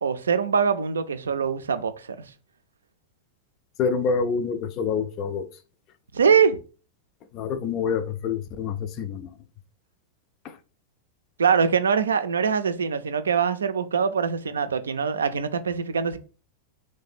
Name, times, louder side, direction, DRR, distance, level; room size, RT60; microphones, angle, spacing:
voice 1, 0.0-2.2 6.1-6.6 11.4-16.2, right 6 dB, 70° right, 0.4 m, -23 dB
voice 2, 3.8-5.4 7.3-9.3, left 6 dB, 40° left, 0.5 m, -26 dB
3.2 x 3.2 x 4.2 m
figure-of-eight pair, 90°, 0 cm